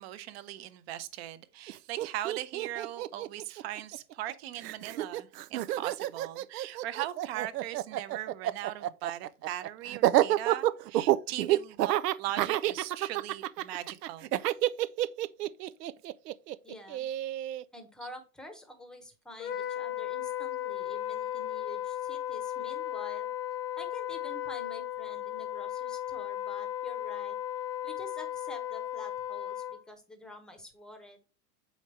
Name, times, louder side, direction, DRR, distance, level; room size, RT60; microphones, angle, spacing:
voice 1, 0.0-14.3 17.0-17.2, right 13 dB, 40° right, 0.8 m, -39 dB
Laughter, 1.7-1.8 2.0-4.3 4.6-17.6, right 14 dB, 85° right, 0.6 m, -29 dB
voice 2, 16.6-17.0 17.7-23.3 23.8-27.4 27.8-31.2, left 1 dB, ahead, 0.9 m, -48 dB
Wind instrument woodwind instrument, 19.4-29.8, left 12 dB, 20° left, 0.5 m, -35 dB
7.7 x 5.2 x 3.2 m
supercardioid pair, 150°, 47 cm